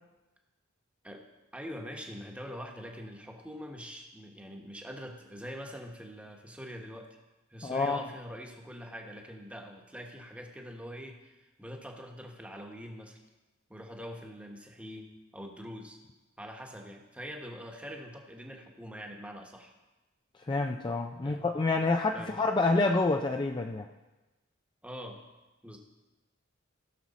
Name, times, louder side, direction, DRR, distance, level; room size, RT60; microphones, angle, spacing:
voice 1, 1.5-7.1 7.5-13.2 13.7-16.0 16.4-19.7 21.2-21.5 22.1-22.4 24.8-25.2 25.6-25.8, equal, 5° right, 1 dB, 1.2 m, -44 dB
voice 2, 7.6-8.0 20.5-23.9, left 3 dB, 20° left, 4 dB, 0.4 m, -28 dB
16.5 x 6.3 x 4.2 m, 1.1 s
head